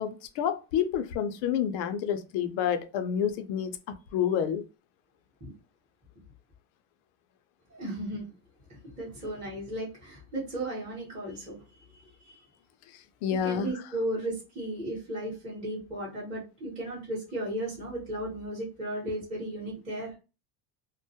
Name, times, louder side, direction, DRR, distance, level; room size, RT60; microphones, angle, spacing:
voice 1, 0.0-3.8 4.1-4.6 12.9-13.7, left 8 dB, 70° left, 0.6 m, -29 dB
voice 2, 7.7-8.3 8.7-12.4 13.3-20.2, right 1 dB, 15° right, 0.8 m, -35 dB
2.2 x 2.1 x 2.7 m
cardioid pair, 155°, 48 cm